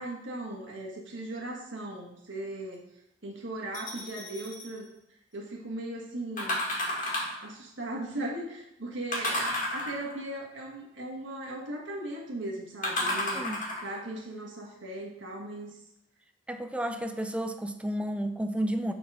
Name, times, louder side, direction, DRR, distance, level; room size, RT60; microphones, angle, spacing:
voice 1, 0.0-2.9 3.2-4.9 5.3-6.6 7.4-13.5 13.8-15.8, right 1 dB, 80° right, -1 dB, 1.7 m, -38 dB
sound 1, 3.7-4.7 6.4-7.5 9.1-10.3 12.8-14.0 14.6-14.7, left 1 dB, 45° left, 1.8 m, -31 dB
voice 2, 16.5-18.9, right 1 dB, 5° right, 7 dB, 0.4 m, -31 dB
7.0 x 4.1 x 4.9 m, 0.81 s
head